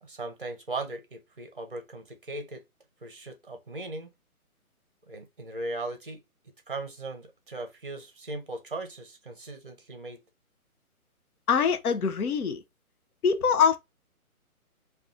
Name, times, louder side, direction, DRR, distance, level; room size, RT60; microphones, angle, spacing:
voice 1, 0.0-2.6 3.0-4.1 5.1-6.2 6.7-10.2, right 2 dB, 35° right, 0.6 m, -38 dB
voice 2, 11.5-12.6 13.2-13.8, left 6 dB, 75° left, 0.6 m, -23 dB
2.5 x 2.4 x 3.5 m
hypercardioid pair, 180°, 45 cm